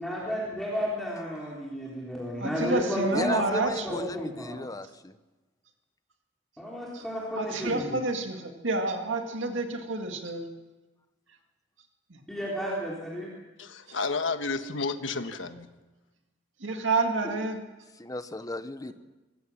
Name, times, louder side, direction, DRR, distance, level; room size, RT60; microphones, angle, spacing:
voice 1, 0.0-4.6 6.6-8.0 12.3-13.3, equal, ahead, -5 dB, 3.7 m, -32 dB
voice 2, 2.4-4.0 6.9-7.0 7.3-10.5 16.6-17.6, right 3 dB, 70° right, 4 dB, 2.1 m, -29 dB
voice 3, 3.1-5.2 18.0-18.9, left 2 dB, 20° left, 12 dB, 0.9 m, -35 dB
voice 4, 13.6-15.7, left 4 dB, 75° left, 9 dB, 1.4 m, -31 dB
24.5 x 16.0 x 7.3 m, 1.1 s
head